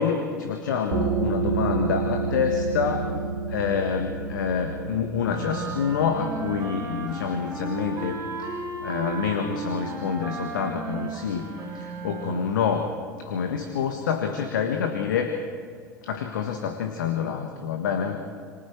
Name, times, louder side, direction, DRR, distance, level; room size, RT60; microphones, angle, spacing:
voice 1, 0.0-3.1 3.5-8.5 8.8-12.9 13.2-15.3 16.0-18.2, left 7 dB, 70° left, 5 dB, 1.6 m, -27 dB
sound 1, 0.9-12.3, right 5 dB, 60° right, 2.8 m, -32 dB
sound 2, 5.2-12.6, right 3 dB, 30° right, 4.5 m, -34 dB
27.5 x 25.0 x 4.7 m, 2.2 s
figure-of-eight pair, 75°, 11 cm